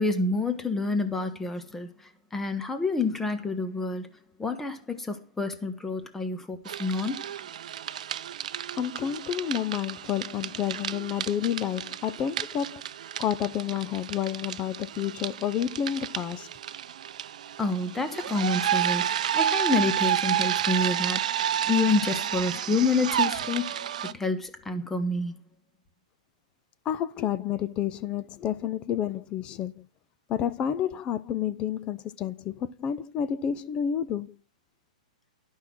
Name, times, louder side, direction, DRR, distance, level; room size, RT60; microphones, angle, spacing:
voice 1, 0.0-1.9 2.3-4.1 4.4-7.2 17.6-25.4, left 3 dB, 5° left, 1.2 m, -28 dB
sound 1, 6.7-24.1, right 10 dB, 70° right, 0.6 m, -31 dB
voice 2, 8.8-12.8 13.2-16.5 26.8-29.9 30.3-34.4, left 9 dB, 25° left, 0.7 m, -30 dB
11.5 x 5.6 x 6.1 m
hypercardioid pair, 145°, 4 cm